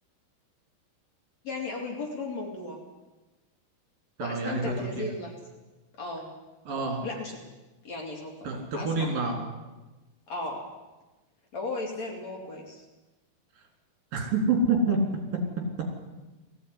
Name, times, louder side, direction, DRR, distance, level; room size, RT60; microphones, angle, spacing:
voice 1, 1.4-2.8 4.2-5.3 6.0-6.3 6.8-7.4 7.8-8.4 8.7-9.1 10.3-10.7 11.5-12.8, left 3 dB, 45° left, 0 dB, 4.0 m, -35 dB
voice 2, 4.2-5.1 6.7-7.0 8.4-9.5 14.1-15.0, right 3 dB, 60° right, 2 dB, 5.4 m, -27 dB
19.0 x 15.5 x 9.9 m, 1.1 s
omnidirectional pair, 4.8 m